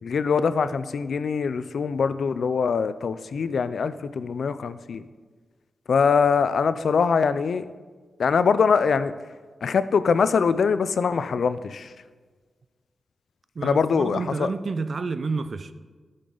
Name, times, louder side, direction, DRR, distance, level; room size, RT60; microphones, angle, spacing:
voice 1, 0.0-5.1 5.9-7.7 8.2-9.1 9.6-11.9 13.6-14.5, left 5 dB, 75° left, 0.4 m, -23 dB
voice 2, 13.5-15.7, right 4 dB, 55° right, 0.5 m, -29 dB
14.0 x 6.7 x 3.9 m
wide cardioid pair, 105°, 0 cm